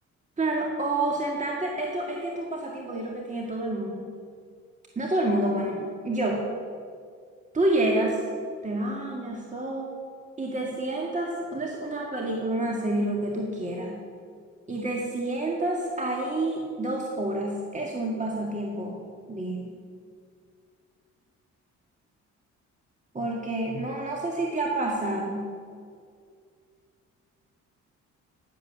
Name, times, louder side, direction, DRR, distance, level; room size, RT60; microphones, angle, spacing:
voice 1, 0.4-4.1 5.0-6.5 7.5-8.2 8.6-9.9 10.4-14.0 14.7-19.0 19.3-19.7 23.1-25.5, right 1 dB, 25° right, -1 dB, 2.0 m, -28 dB
12.0 x 10.5 x 6.9 m, 2.2 s
cardioid pair, 90°, 30 cm